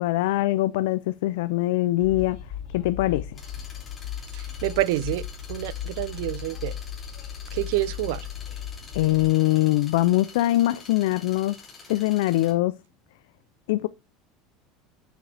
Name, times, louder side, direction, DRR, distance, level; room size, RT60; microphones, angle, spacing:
voice 1, 0.0-2.4 2.7-3.4 8.9-12.7 13.7-13.9, left 16 dB, 80° left, 0.4 m, -23 dB
Train, 2.0-9.3, left 10 dB, 50° left, 3.7 m, -36 dB
sound 1, 3.4-12.5, left 5 dB, 15° left, 3.1 m, -47 dB
voice 2, 4.3-5.2 5.5-6.7 7.5-8.3, right 15 dB, 70° right, 0.4 m, -27 dB
7.3 x 7.0 x 3.3 m
cardioid pair, 175°, 0 cm